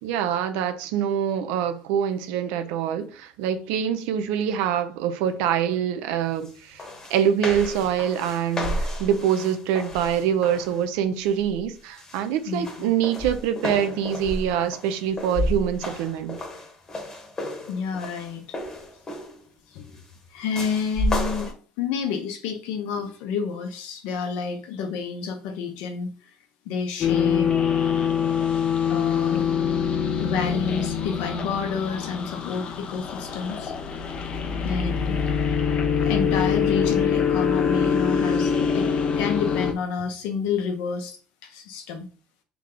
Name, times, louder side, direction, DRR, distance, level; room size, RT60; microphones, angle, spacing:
voice 1, 0.0-6.8 7.1-16.4, right 9 dB, 85° right, 0.6 m, -25 dB
sound 1, 6.4-6.5 6.8-10.8 11.3-11.6 12.0-19.4 20.5-21.5, left 1 dB, 25° left, 1.2 m, -32 dB
voice 2, 12.5-12.9 17.7-18.6 19.7-20.0 20.3-26.1 26.6-27.5 28.9-29.5 30.2-33.7 34.6-35.3 36.0-38.9 39.2-42.1, left 5 dB, 80° left, 1.0 m, -29 dB
sound 2, 27.0-39.7, left 7 dB, 40° left, 0.6 m, -24 dB
3.5 x 3.3 x 3.8 m
cardioid pair, 120°, 3 cm